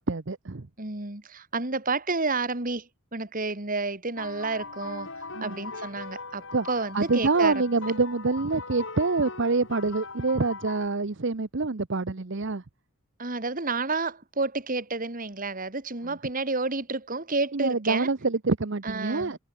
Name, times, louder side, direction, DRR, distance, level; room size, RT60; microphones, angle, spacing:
voice 1, 0.0-0.7 5.3-5.6 6.5-6.7 6.9-12.6 17.5-19.4, right 3 dB, 55° right, 0.9 m, -26 dB
voice 2, 0.8-7.5 13.2-18.1 18.8-19.4, right 3 dB, 40° right, 2.2 m, -30 dB
sound 1, 4.2-10.9, left 3 dB, 55° left, 6.5 m, -40 dB
head